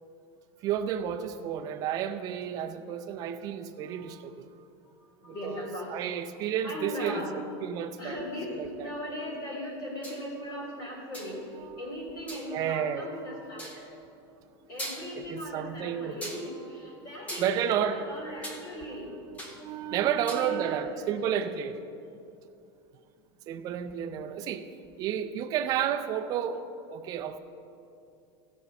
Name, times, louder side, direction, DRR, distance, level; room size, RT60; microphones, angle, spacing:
voice 1, 0.6-4.5 5.2-7.2 7.6-8.2 8.6-8.9 11.6-11.8 12.5-13.1 15.1-16.2 17.4-21.8 23.5-24.7 25.0-26.6 26.9-27.4, right 9 dB, 25° right, 8 dB, 0.5 m, -32 dB
voice 2, 4.8-7.4 8.0-11.4 11.8-14.3 14.7-19.1 20.0-21.5, left 1 dB, 30° left, -3 dB, 3.2 m, -39 dB
sound 1, 10.0-10.3 11.1-11.4 12.3-12.5 13.6-13.8 14.4-14.5 14.8-15.3 16.2-16.5 17.3-18.6 18.9-19.6 20.0-20.5, right 1 dB, 10° left, 1.1 m, -40 dB
16.0 x 5.4 x 6.9 m, 2.6 s
supercardioid pair, 180°, 14 cm